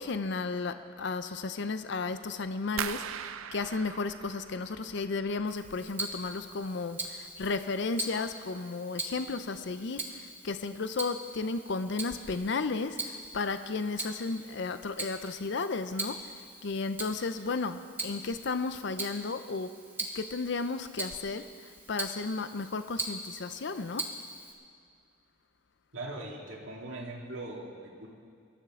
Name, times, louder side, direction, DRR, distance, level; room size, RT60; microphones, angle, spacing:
voice 1, 0.0-19.7 20.0-24.1, left 4 dB, 55° left, 10 dB, 0.5 m, -34 dB
sound 1, 2.8-5.6 5.9-6.6 7.0-7.4 7.8-8.0, right 9 dB, 85° right, 0.5 m, -40 dB
Tick-tock, 5.5-24.5, right 2 dB, 10° right, 1.2 m, -41 dB
voice 2, 25.9-28.1, right 2 dB, 70° right, -1 dB, 2.2 m, -40 dB
22.0 x 13.0 x 3.7 m, 2.4 s
head